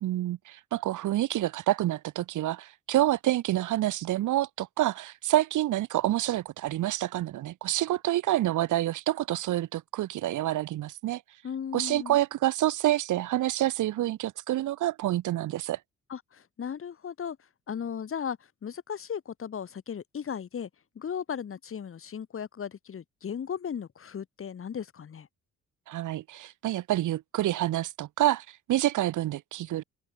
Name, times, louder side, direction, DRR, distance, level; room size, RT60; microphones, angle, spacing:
voice 1, 0.0-11.2 11.7-15.8 25.9-29.8, right 14 dB, 80° right, 1.8 m, -28 dB
voice 2, 11.4-12.2 16.1-17.4 17.7-20.7 21.0-25.3, left 7 dB, 45° left, 2.2 m, -36 dB
cardioid pair, 90°, 30 cm